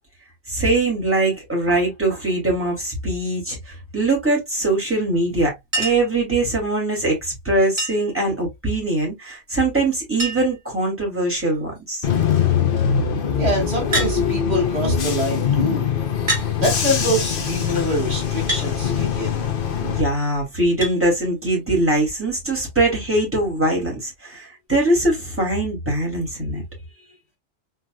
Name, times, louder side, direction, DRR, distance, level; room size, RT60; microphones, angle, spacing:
voice 1, 0.5-12.1 19.8-26.6, right 2 dB, 10° right, 2.8 m, -22 dB
Chink clink, 5.7-6.2 7.8-8.2 9.6-9.7 9.9-10.0 10.2-10.6 11.4-11.8 13.9-14.2 15.2-15.3 16.3-16.5 18.5-18.7 20.8-21.0 22.4-22.5, right 1 dB, 50° right, 2.4 m, -26 dB
Bus / Engine, 12.0-20.0, left 7 dB, 60° left, 1.0 m, -22 dB
voice 2, 13.4-15.9 16.6-19.5, equal, 75° right, 2.4 m, -25 dB
4.5 x 3.9 x 2.3 m
omnidirectional pair, 1.1 m